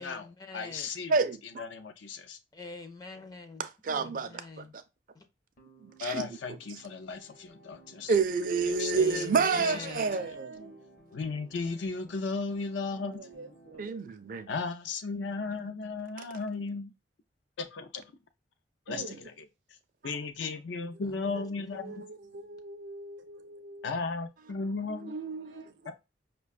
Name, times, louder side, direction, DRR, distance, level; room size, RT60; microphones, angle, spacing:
voice 1, 0.0-0.9 2.5-3.6 3.9-4.7 5.1-5.3 9.0-10.1 21.0-22.0, left 3 dB, 20° left, 0.4 m, -44 dB
voice 2, 0.5-1.1 1.6-2.4 6.0-8.1 8.7-9.2 9.7-10.0 11.1-13.3 14.5-16.9 17.6-18.1 18.9-19.0 20.0-21.9 23.8-25.1 25.9-26.0, left 4 dB, 85° left, 0.4 m, -35 dB
voice 3, 1.1-1.6 3.6-4.3 4.6-4.8 5.8-6.3 8.1-10.5 13.8-14.5 18.9-19.1 25.1-25.7, right 4 dB, 50° right, 0.4 m, -29 dB
sound 1, 5.6-13.8, right 2 dB, 50° left, 0.7 m, -57 dB
voice 4, 8.4-10.8 13.0-13.9 18.9-19.2 20.9-23.9 24.8-25.9, right 2 dB, 90° right, 0.6 m, -44 dB
5.3 x 2.2 x 2.3 m
head